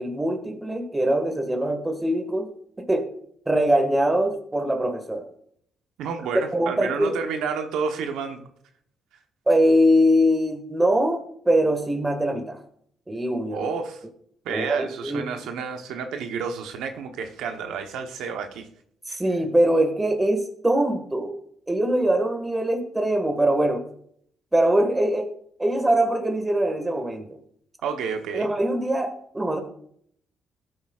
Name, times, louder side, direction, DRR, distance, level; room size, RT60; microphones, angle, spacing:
voice 1, 0.0-2.5 2.8-3.1 3.4-5.3 6.5-7.2 9.5-12.6 13.1-13.7 14.5-15.3 19.1-21.3 21.7-23.8 24.5-25.3 25.6-27.4 28.3-29.6, right 1 dB, 15° right, 6 dB, 1.7 m, -22 dB
voice 2, 6.0-8.5 13.5-14.0 14.4-18.7 19.1-19.2 27.8-28.5, right 6 dB, 85° right, 5 dB, 0.9 m, -30 dB
14.0 x 7.8 x 2.4 m, 0.65 s
cardioid pair, 90°, 0 cm